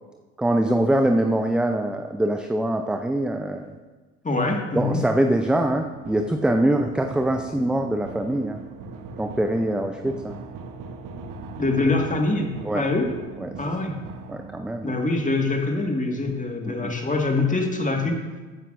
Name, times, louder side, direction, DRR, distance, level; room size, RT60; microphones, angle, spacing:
voice 1, 0.4-3.8 4.7-8.6 9.2-10.3 12.6-12.8 13.4-13.5 14.3-15.0 16.6-16.9, right 1 dB, ahead, 5 dB, 0.4 m, -23 dB
voice 2, 4.2-5.0 11.6-13.1 13.6-14.0 14.8-18.2, left 2 dB, 20° left, 2 dB, 1.8 m, -24 dB
sound 1, 5.7-14.9, right 4 dB, 50° right, 1.2 m, -40 dB
14.0 x 9.1 x 2.6 m, 1.3 s
hypercardioid pair, 65°, 41 cm